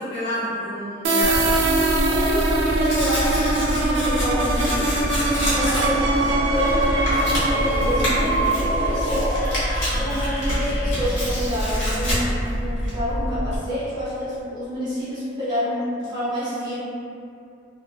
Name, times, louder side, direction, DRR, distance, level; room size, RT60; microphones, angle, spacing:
voice 1, 0.0-1.5 5.3-5.7 9.9-10.3, equal, 30° left, -12 dB, 0.9 m, -32 dB
sound 1, 1.0-10.6, right 2 dB, 65° right, 0.3 m, -23 dB
Tearing, 1.2-13.6, equal, 75° left, 1.1 m, -25 dB
voice 2, 2.1-5.0 5.5-9.3 9.9-16.8, equal, 20° right, -12 dB, 0.6 m, -28 dB
sound 2, 4.9-11.5, left 1 dB, 45° left, 0.5 m, -32 dB
2.5 x 2.4 x 2.2 m, 2.5 s
head